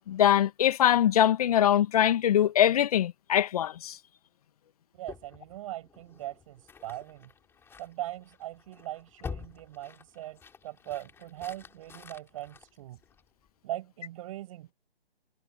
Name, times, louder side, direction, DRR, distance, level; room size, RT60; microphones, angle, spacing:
voice 1, 0.1-4.0, left 10 dB, 35° left, 1.9 m, -23 dB
voice 2, 4.9-7.3 7.8-13.0 13.6-14.7, right 14 dB, 35° right, 7.6 m, -40 dB
sound 1, 5.1-13.5, left 6 dB, 10° left, 5.4 m, -48 dB
figure-of-eight pair, 140°, 31 cm